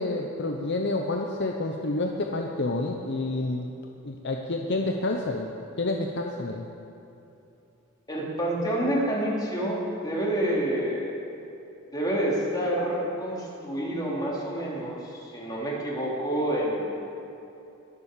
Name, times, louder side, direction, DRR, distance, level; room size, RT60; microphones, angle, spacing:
voice 1, 0.0-3.7 4.0-5.5 5.8-6.7, left 2 dB, 50° left, 2 dB, 0.8 m, -29 dB
voice 2, 8.1-11.1 11.9-17.0, right 1 dB, 20° left, -4 dB, 2.8 m, -28 dB
21.0 x 7.3 x 6.7 m, 2.9 s
head